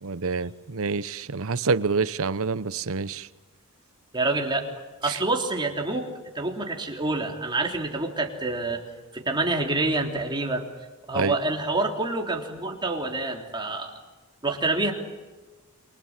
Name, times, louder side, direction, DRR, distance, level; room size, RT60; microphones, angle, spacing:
voice 1, 0.0-3.3 5.0-5.2 11.1-11.3, right 4 dB, 70° right, 0.9 m, -27 dB
voice 2, 4.1-4.7 5.0-6.1 6.3-8.8 9.1-10.6 11.1-13.9 14.4-14.9, right 2 dB, 20° right, 3.5 m, -27 dB
29.0 x 24.5 x 7.5 m
head